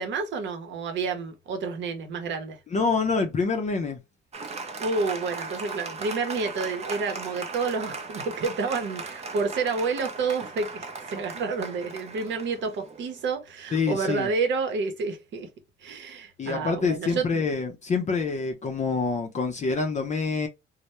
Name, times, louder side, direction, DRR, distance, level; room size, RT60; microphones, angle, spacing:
voice 1, 0.0-2.6 4.8-15.5 15.8-17.4, right 4 dB, 70° right, 0.7 m, -29 dB
voice 2, 2.7-4.0 13.7-14.3 16.4-20.5, left 4 dB, 35° left, 0.5 m, -26 dB
Applause, 4.3-13.3, right 4 dB, 35° right, 0.5 m, -38 dB
2.1 x 2.0 x 2.9 m
cardioid pair, 90°, 20 cm